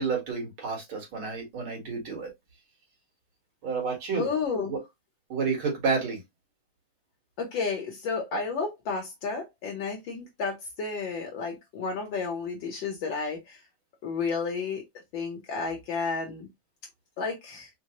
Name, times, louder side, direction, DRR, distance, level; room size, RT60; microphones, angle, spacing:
voice 1, 0.0-2.3 3.6-4.3 4.6-4.8 5.3-6.2, right 5 dB, 70° right, 2.2 m, -30 dB
voice 2, 4.1-4.8 7.4-13.6 14.0-14.8 15.1-16.5 17.2-17.7, left 4 dB, 70° left, 1.4 m, -32 dB
4.5 x 2.0 x 2.8 m
omnidirectional pair, 2.3 m